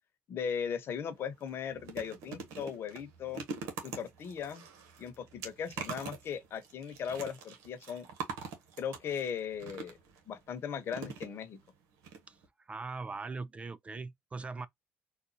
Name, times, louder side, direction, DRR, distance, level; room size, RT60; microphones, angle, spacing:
voice 1, 0.3-3.4 3.8-4.7 5.0-8.1 8.8-10.0 10.3-11.6, left 7 dB, 55° left, 1.0 m, -38 dB
sound 1, 0.9-1.0 1.4-10.2 10.9-11.7 12.0-12.2 12.4-12.5, right 5 dB, 80° right, 1.2 m, -44 dB
voice 2, 12.7-14.7, right 4 dB, 25° right, 0.4 m, -40 dB
4.0 x 2.4 x 2.7 m
supercardioid pair, 80°, 5 cm